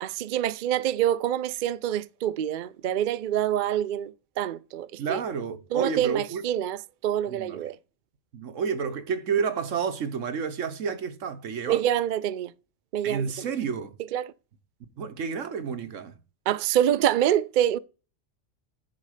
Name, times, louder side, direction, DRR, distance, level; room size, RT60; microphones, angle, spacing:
voice 1, 0.0-4.1 4.4-5.2 5.7-6.8 7.0-7.8 11.7-12.5 12.9-13.3 14.1-14.3 16.5-17.8, right 11 dB, 60° right, 0.5 m, -26 dB
voice 2, 5.0-6.5 7.3-7.6 8.3-11.9 13.0-14.0 15.0-16.2, right 6 dB, 80° right, 1.4 m, -30 dB
10.5 x 4.1 x 4.9 m
omnidirectional pair, 1.3 m